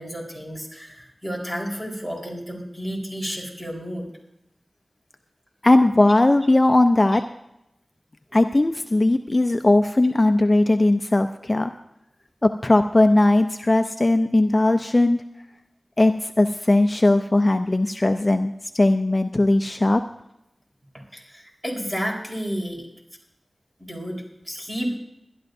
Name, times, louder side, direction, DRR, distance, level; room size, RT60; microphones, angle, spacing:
voice 1, 0.0-4.1 21.1-22.8 23.8-25.0, equal, 15° right, -1 dB, 4.2 m, -31 dB
voice 2, 5.6-7.2 8.3-11.7 12.4-15.2 16.0-20.0, left 2 dB, 35° left, 7 dB, 0.5 m, -18 dB
21.0 x 12.0 x 2.7 m, 0.87 s
wide cardioid pair, 70°, 0 cm